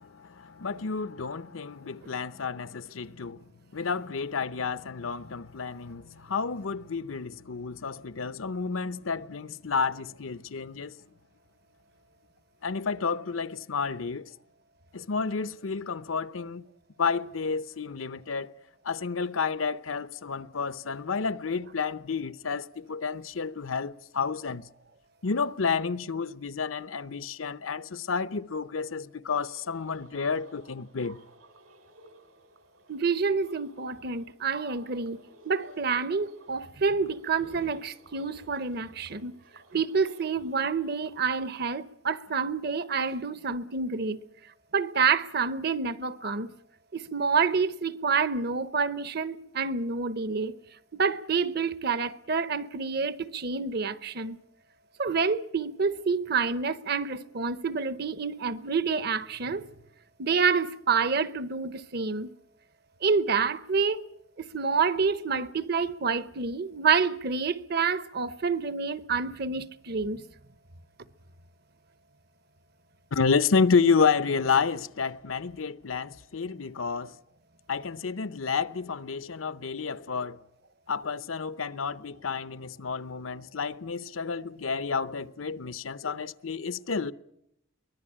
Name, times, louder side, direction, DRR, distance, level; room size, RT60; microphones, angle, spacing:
voice 1, 0.0-3.4 3.7-10.9 12.6-14.3 14.9-16.6 17.0-18.5 18.8-24.7 25.2-31.2 73.1-77.2 77.7-80.4 80.9-87.1, left 5 dB, 80° left, 0.8 m, -30 dB
sound 1, 29.3-42.1, right 2 dB, 85° right, 4.1 m, -56 dB
voice 2, 32.9-35.2 35.4-39.3 39.7-44.2 44.7-46.5 46.9-50.5 50.9-54.4 55.0-59.6 60.2-62.3 63.0-64.0 64.4-70.2, right 5 dB, 50° right, 0.9 m, -28 dB
23.5 x 18.5 x 8.7 m
head